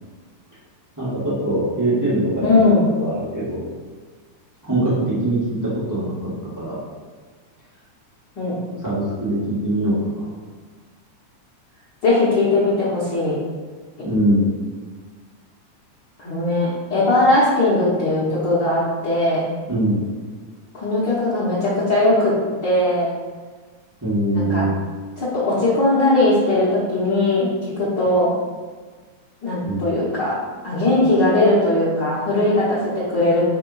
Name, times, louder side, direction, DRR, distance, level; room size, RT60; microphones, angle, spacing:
voice 1, 1.0-2.6 2.9-3.6 4.6-6.3 6.5-6.8 8.8-10.3 14.0-14.5 19.7-20.0 24.0-24.7 29.6-29.8, right 1 dB, 25° right, -10 dB, 0.4 m, -22 dB
voice 2, 2.4-2.9 8.4-8.5 12.0-13.4 16.2-19.4 20.7-22.3 22.6-23.1 24.3-24.6 25.2-28.3 29.4-30.3 30.6-33.4, left 2 dB, 50° left, -8 dB, 1.4 m, -19 dB
4.8 x 3.6 x 5.5 m, 1.5 s
omnidirectional pair, 3.5 m